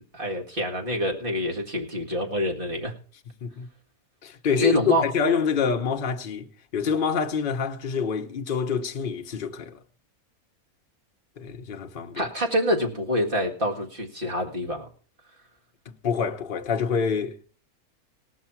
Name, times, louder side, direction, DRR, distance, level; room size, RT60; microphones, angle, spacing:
voice 1, 0.1-2.9 4.6-5.0 12.2-14.9, left 1 dB, 35° right, 2.0 m, -26 dB
voice 2, 4.2-9.8 11.4-12.3 15.9-17.5, left 6 dB, 40° left, 0.9 m, -27 dB
18.0 x 6.4 x 5.8 m
omnidirectional pair, 1.5 m